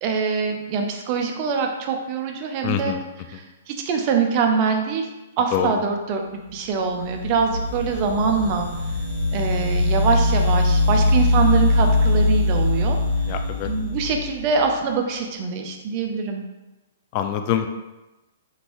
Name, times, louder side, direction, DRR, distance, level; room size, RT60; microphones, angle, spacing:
voice 1, 0.0-2.9 3.3-5.1 5.4-8.7 9.3-13.0 13.6-16.4, right 5 dB, 35° right, 3 dB, 0.4 m, -24 dB
voice 2, 2.6-3.0 3.3-3.4 5.5-5.7 13.3-13.7 17.1-17.7, left 10 dB, 35° left, 6 dB, 0.3 m, -25 dB
sound 1, 7.0-14.5, left 2 dB, 10° right, 1.0 m, -21 dB
3.7 x 2.5 x 3.0 m, 1.0 s
hypercardioid pair, 155°, 0 cm